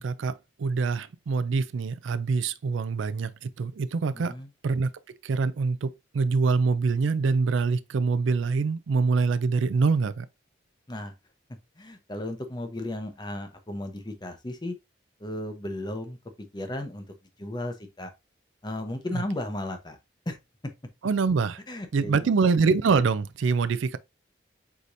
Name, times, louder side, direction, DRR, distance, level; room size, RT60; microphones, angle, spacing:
voice 1, 0.0-4.4 4.6-4.9 5.2-10.3 19.1-19.2 21.0-21.6 21.9-24.0, right 4 dB, 80° right, 0.4 m, -25 dB
voice 2, 4.1-4.5 10.9-11.1 11.8-14.7 15.2-16.2 16.5-17.1 17.4-18.1 18.6-20.0 20.3-20.4 21.7-22.1, left 1 dB, 20° left, 0.7 m, -34 dB
4.8 x 4.1 x 2.6 m
head